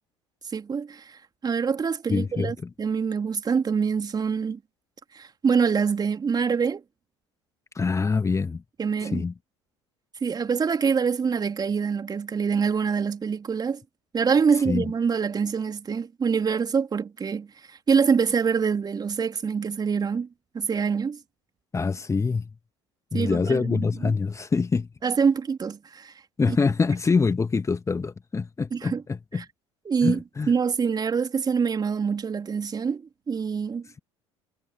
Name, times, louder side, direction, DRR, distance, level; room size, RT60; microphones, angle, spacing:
voice 1, 0.5-4.6 5.1-6.8 8.8-9.2 10.2-13.8 14.1-20.3 20.5-21.2 23.1-24.1 25.0-26.1 26.5-26.6 28.7-29.0 29.3-29.4 29.8-30.2 30.5-33.9, right 6 dB, 25° right, 3.3 m, -25 dB
voice 2, 2.1-2.7 7.8-8.6 9.0-9.3 14.7-14.9 21.7-22.5 23.1-24.9 26.4-29.4 30.0-30.5, left 4 dB, 20° left, 1.9 m, -25 dB
figure-of-eight pair, 65°, 15 cm